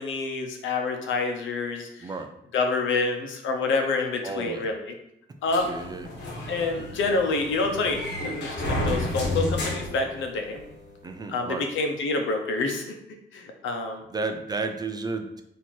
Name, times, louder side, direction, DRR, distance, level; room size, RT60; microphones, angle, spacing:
voice 1, 0.0-2.1 2.5-4.9 5.4-5.7 6.5-10.6 11.3-12.8 13.3-14.0, left 3 dB, 80° left, 4 dB, 0.8 m, -27 dB
voice 2, 4.2-4.7 5.6-6.1 11.0-11.7 14.1-15.4, right 3 dB, 20° right, 6 dB, 0.3 m, -32 dB
sound 1, 5.5-10.7, left 1 dB, 65° left, 1.2 m, -31 dB
4.3 x 2.8 x 4.5 m, 0.77 s
cardioid pair, 165°, 20 cm